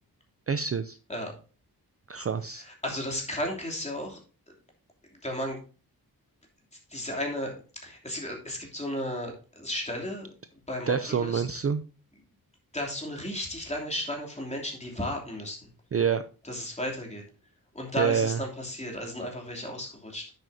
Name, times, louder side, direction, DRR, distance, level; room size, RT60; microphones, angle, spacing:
voice 1, 0.5-1.0 2.1-2.6 10.9-11.8 15.9-16.2 18.0-18.4, right 6 dB, 40° right, 11 dB, 0.4 m, -27 dB
voice 2, 2.5-4.2 5.2-5.6 6.9-10.3 10.7-11.4 12.7-15.7 16.4-17.2 17.7-20.3, equal, 15° left, 0 dB, 2.9 m, -34 dB
9.7 x 7.8 x 2.7 m, 0.36 s
wide cardioid pair, 120°, 38 cm